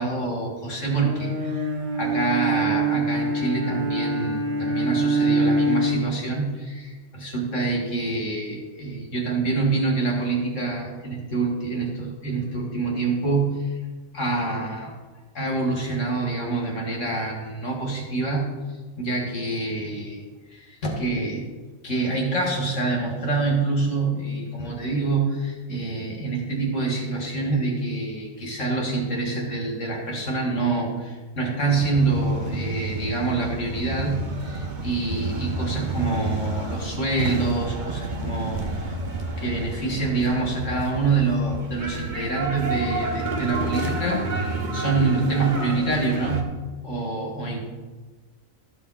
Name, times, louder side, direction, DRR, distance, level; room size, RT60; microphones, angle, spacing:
voice 1, 0.0-1.7 1.9-13.7 14.1-14.9 15.3-18.5 19.0-20.2 20.5-21.4 21.8-38.9 39.4-46.5 46.8-47.6, right 3 dB, 70° left, -1 dB, 2.5 m, -26 dB
Bowed string instrument, 1.0-6.2, right 2 dB, 65° right, 1.8 m, -24 dB
sound 1, 31.7-46.4, right 2 dB, 40° right, 1.2 m, -30 dB
14.0 x 7.2 x 4.2 m, 1.3 s
omnidirectional pair, 1.4 m